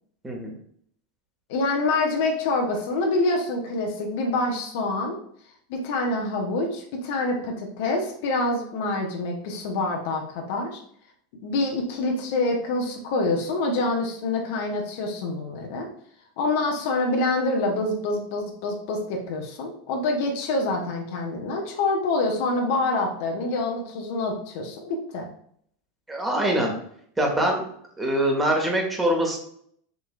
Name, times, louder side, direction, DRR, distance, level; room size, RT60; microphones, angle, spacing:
voice 1, 1.5-5.2 5.7-10.8 11.4-15.9 16.4-25.3, left 2 dB, 55° left, 1 dB, 0.9 m, -26 dB
voice 2, 26.1-26.7 27.2-27.7 28.0-29.4, right 1 dB, 10° right, 0 dB, 1.3 m, -23 dB
6.8 x 3.1 x 2.4 m, 0.65 s
figure-of-eight pair, 85°, 0 cm